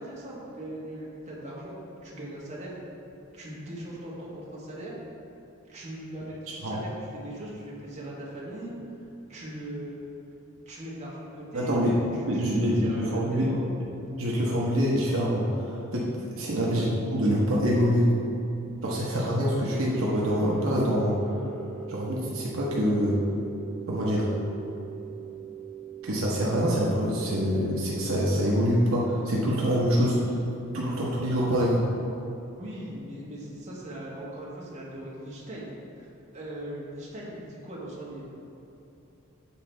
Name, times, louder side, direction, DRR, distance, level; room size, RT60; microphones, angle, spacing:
voice 1, 0.0-1.8 2.0-2.7 3.3-4.9 5.7-8.7 9.3-10.0 10.7-13.6 16.5-16.7 32.6-36.1 36.3-38.4, right 1 dB, 35° right, -6 dB, 1.4 m, -39 dB
voice 2, 11.5-13.5 14.2-18.1 18.8-21.3 21.9-23.2 23.9-24.3 26.0-30.4 30.7-31.9, equal, 70° right, -5 dB, 0.9 m, -25 dB
sound 1, 19.8-30.6, right 8 dB, 10° left, 0.7 m, -42 dB
7.3 x 3.8 x 4.4 m, 2.9 s
head